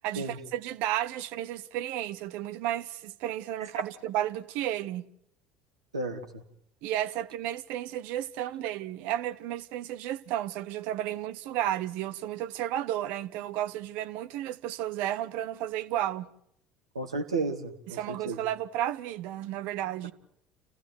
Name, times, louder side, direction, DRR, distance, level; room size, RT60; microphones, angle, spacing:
voice 1, 0.0-5.1 6.8-16.3 17.9-20.1, right 12 dB, 60° right, 1.0 m, -33 dB
voice 2, 5.9-6.4 16.9-18.4, right 3 dB, 85° right, 2.1 m, -33 dB
29.5 x 15.5 x 9.4 m
figure-of-eight pair, 65°, 3 cm